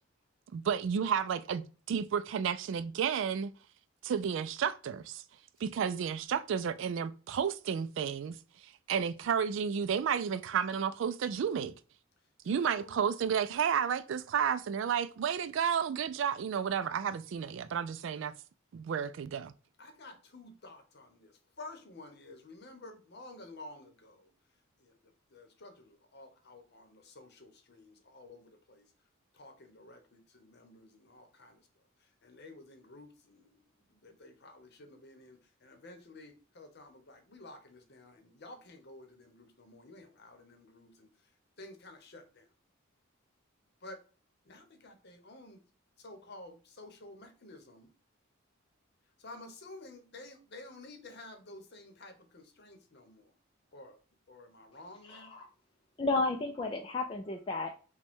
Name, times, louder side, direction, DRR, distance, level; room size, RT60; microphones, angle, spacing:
voice 1, 0.5-3.5 4.0-5.2 5.6-8.4 8.9-11.7 12.5-18.3 18.7-19.5, right 7 dB, 60° right, 0.3 m, -32 dB
voice 2, 12.4-13.0 19.8-24.3 24.8-25.0 25.3-28.9 29.3-31.6 32.0-41.1 41.6-42.5 43.8-44.0 44.4-45.6 46.0-47.9 49.2-53.3 53.7-54.0 54.3-55.3, left 2 dB, 50° left, 0.8 m, -52 dB
voice 3, 55.0-55.5 56.0-57.7, left 3 dB, 25° left, 0.3 m, -33 dB
5.0 x 2.2 x 3.5 m
head